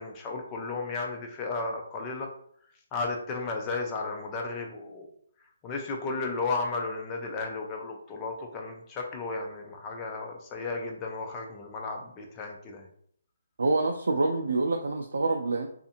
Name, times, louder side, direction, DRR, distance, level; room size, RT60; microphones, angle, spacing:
voice 1, 0.0-2.3 2.9-5.1 5.6-12.9, left 3 dB, 10° left, 1 dB, 0.3 m, -34 dB
voice 2, 13.6-15.7, right 3 dB, 90° right, 3 dB, 0.3 m, -26 dB
2.5 x 2.4 x 2.7 m, 0.66 s
hypercardioid pair, 175°, 0 cm